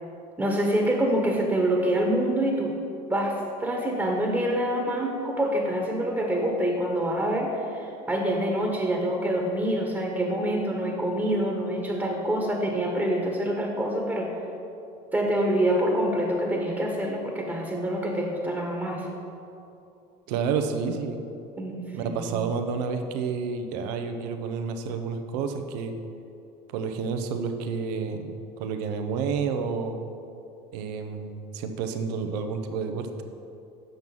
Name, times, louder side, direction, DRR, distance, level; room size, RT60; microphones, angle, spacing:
voice 1, 0.4-2.7 3.1-14.4 15.1-19.1 21.6-22.4, right 1 dB, 10° right, 0 dB, 1.3 m, -26 dB
voice 2, 20.3-21.2 21.9-25.9 26.7-30.0 30.7-33.2, right 5 dB, 80° right, 6 dB, 0.8 m, -30 dB
7.8 x 5.9 x 5.4 m, 2.8 s
supercardioid pair, 85°, 20 cm